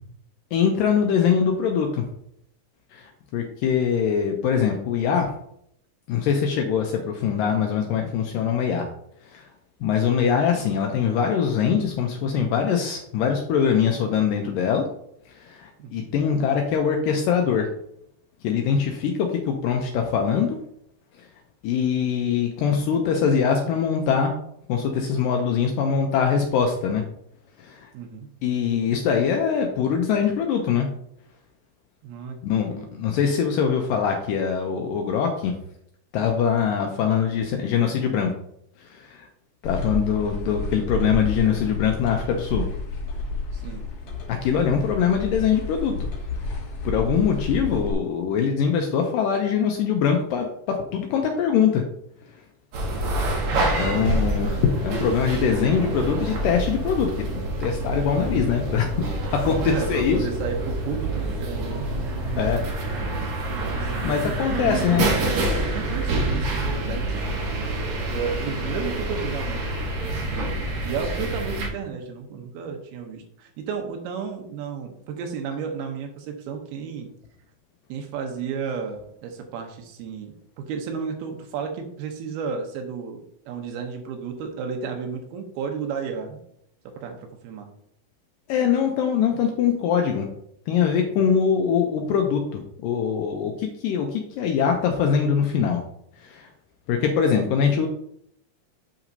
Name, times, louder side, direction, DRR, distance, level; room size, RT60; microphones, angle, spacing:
voice 1, 0.5-2.1 2.9-5.4 6.1-8.9 9.3-9.5 9.8-14.9 15.3-17.7 18.4-20.6 21.6-24.3 24.7-27.0 27.6-27.9 28.4-30.9 32.4-35.6 36.1-38.3 38.8-39.3 39.6-42.7 44.3-45.9 46.9-51.8 53.7-59.0 59.3-60.2 62.4-62.6 64.0-65.1 88.5-90.3 90.7-95.8 96.2-96.5 96.9-97.9, left 7 dB, 90° left, 3 dB, 2.0 m, -23 dB
voice 2, 27.9-28.3 32.0-32.9 43.5-43.9 53.8-54.5 59.6-61.9 62.8-63.2 63.5-67.8 68.1-69.6 70.3-77.1 77.9-86.4 86.8-87.7, right 6 dB, 80° right, 3 dB, 2.7 m, -33 dB
sound 1, 39.6-47.9, left 2 dB, 75° left, 1.3 m, -30 dB
sound 2, 52.7-71.7, right 2 dB, 60° right, 2.1 m, -27 dB
7.7 x 5.9 x 2.7 m, 0.73 s
omnidirectional pair, 4.6 m